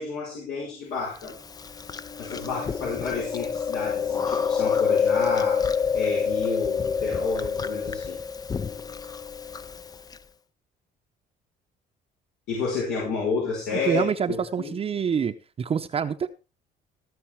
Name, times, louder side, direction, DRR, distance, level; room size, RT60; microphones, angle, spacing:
voice 1, 0.0-1.3 2.2-8.2 12.5-14.8, left 4 dB, 80° left, -5 dB, 5.6 m, -30 dB
Chewing mastication, 1.2-10.2, left 6 dB, 20° left, 0.5 m, -27 dB
voice 2, 13.7-16.3, right 7 dB, 35° right, 7 dB, 0.8 m, -26 dB
17.0 x 6.7 x 4.6 m, 0.33 s
cardioid pair, 110°, 17 cm